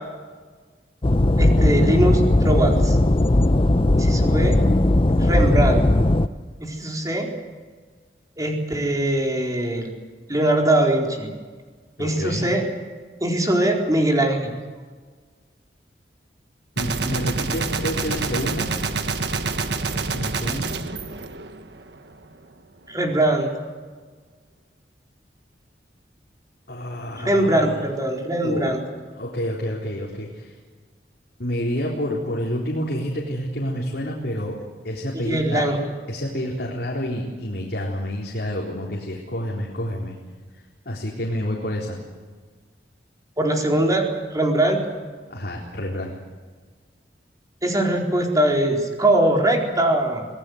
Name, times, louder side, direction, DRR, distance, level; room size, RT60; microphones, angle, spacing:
sound 1, 1.0-6.3, left 1 dB, 30° left, 0.7 m, -18 dB
voice 1, 1.4-3.0 3.9-4.6 5.2-5.8 6.6-7.3 8.4-9.9 10.3-11.3 12.0-12.6 13.2-14.6 22.9-23.5 27.2-28.8 35.1-35.8 43.4-44.1 44.3-44.8 47.6-50.3, right 1 dB, 20° right, 1 dB, 4.3 m, -21 dB
voice 2, 12.0-12.5 16.8-18.7 19.9-20.7 26.7-27.8 28.4-28.8 29.1-30.5 31.4-34.6 34.8-35.7 36.1-40.1 40.6-42.0 45.3-46.2, equal, 65° left, -3 dB, 4.1 m, -28 dB
Gunshot gunfire, 16.8-22.0, right 4 dB, 70° right, 1.4 m, -27 dB
26.5 x 18.5 x 8.1 m, 1.5 s
head